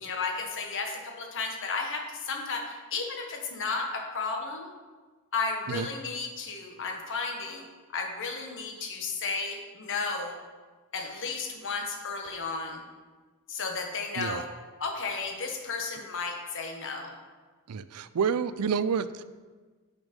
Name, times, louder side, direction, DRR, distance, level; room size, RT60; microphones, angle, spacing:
voice 1, 0.0-4.7 5.3-7.6 7.9-10.4 10.9-12.8 13.5-14.5 14.8-17.1, left 4 dB, 60° left, 2 dB, 1.4 m, -33 dB
voice 2, 17.7-19.2, right 6 dB, 80° right, 14 dB, 0.4 m, -29 dB
9.5 x 5.3 x 5.3 m, 1.4 s
head